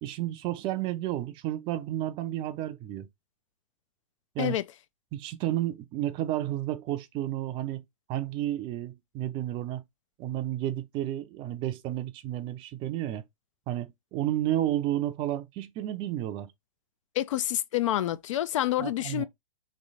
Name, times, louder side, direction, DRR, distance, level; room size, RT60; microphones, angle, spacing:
voice 1, 0.0-3.1 4.3-4.6 5.1-7.8 8.1-9.8 10.2-13.2 13.7-16.5 18.8-19.3, right 13 dB, 25° right, 0.5 m, -31 dB
voice 2, 17.2-19.3, left 13 dB, 55° left, 0.4 m, -28 dB
3.1 x 2.9 x 4.0 m
hypercardioid pair, 130°, 19 cm